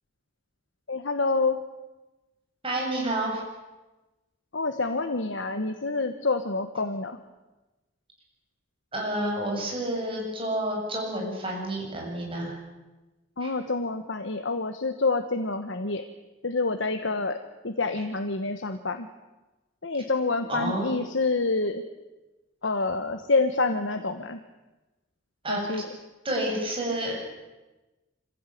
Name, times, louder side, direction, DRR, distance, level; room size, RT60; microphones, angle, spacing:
voice 1, 0.9-1.6 4.5-7.2 13.4-16.1 16.4-19.1 19.8-21.8 22.6-24.4 25.5-25.8, left 3 dB, 70° left, 7 dB, 1.3 m, -27 dB
voice 2, 2.6-3.4 8.9-12.5 13.4-13.5 17.9-18.0 20.5-20.9 25.4-25.6 26.2-27.2, right 1 dB, 25° right, -1 dB, 7.9 m, -29 dB
25.5 x 16.0 x 9.3 m, 1.1 s
head